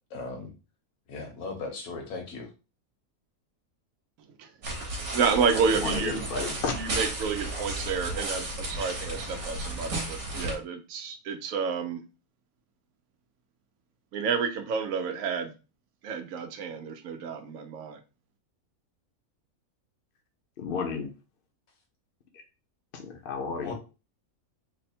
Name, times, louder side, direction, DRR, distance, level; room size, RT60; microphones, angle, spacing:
voice 1, 0.1-0.5 1.1-2.5 23.6-23.7, left 3 dB, 75° left, 2 dB, 1.6 m, -37 dB
sound 1, 4.6-10.6, right 1 dB, 55° right, 1.2 m, -34 dB
voice 2, 5.1-6.3 6.7-12.0 14.1-15.5 16.0-18.0, right 6 dB, 75° right, 5 dB, 1.0 m, -30 dB
voice 3, 5.8-6.7 20.6-21.1 23.2-23.7, left 5 dB, 50° left, 3 dB, 0.8 m, -31 dB
3.5 x 2.1 x 4.2 m, 0.30 s
omnidirectional pair, 1.5 m